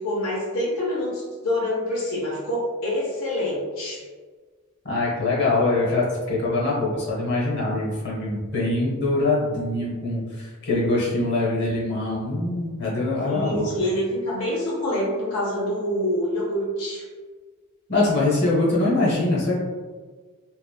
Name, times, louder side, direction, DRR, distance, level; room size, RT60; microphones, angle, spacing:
voice 1, 0.0-4.0 13.2-17.0, left 1 dB, 80° left, -5 dB, 0.6 m, -26 dB
voice 2, 4.8-13.7 17.9-19.6, left 2 dB, 50° left, -5 dB, 0.8 m, -23 dB
2.9 x 2.0 x 2.2 m, 1.5 s
head